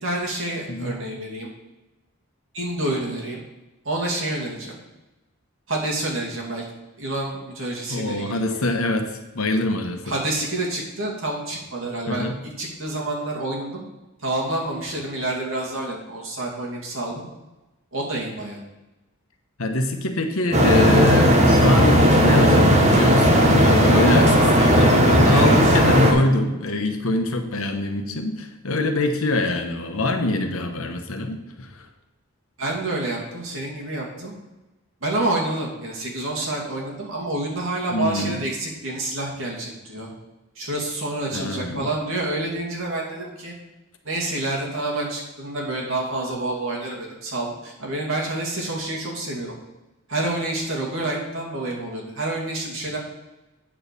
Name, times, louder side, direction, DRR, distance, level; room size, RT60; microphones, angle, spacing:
voice 1, 0.0-1.5 2.5-3.4 3.8-4.8 5.7-6.6 7.0-8.6 10.0-12.3 12.6-13.8 14.2-17.3 17.9-18.6 25.3-25.5 32.6-34.3 35.0-40.1 40.6-43.5 44.0-49.5 50.1-53.0, right 2 dB, 70° right, -2 dB, 2.3 m, -28 dB
voice 2, 0.7-1.0 7.9-10.1 12.1-12.4 19.6-31.9 37.9-38.4 41.3-41.9, left 2 dB, 80° left, 6 dB, 1.1 m, -24 dB
sound 1, 20.5-26.1, equal, 30° right, 1.2 m, -15 dB
8.6 x 4.7 x 6.8 m, 1.0 s
head